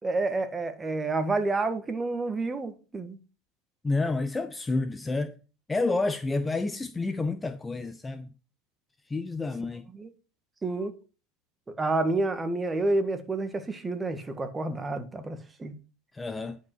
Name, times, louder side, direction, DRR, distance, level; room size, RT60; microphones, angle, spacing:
voice 1, 0.0-3.2 9.9-10.1 10.6-10.9 11.8-15.7, right 2 dB, 15° right, 1.8 m, -29 dB
voice 2, 3.8-5.3 5.7-8.3 9.1-9.9 16.1-16.6, left 3 dB, 15° left, 0.7 m, -29 dB
10.5 x 5.3 x 6.3 m
hypercardioid pair, 100°, 0 cm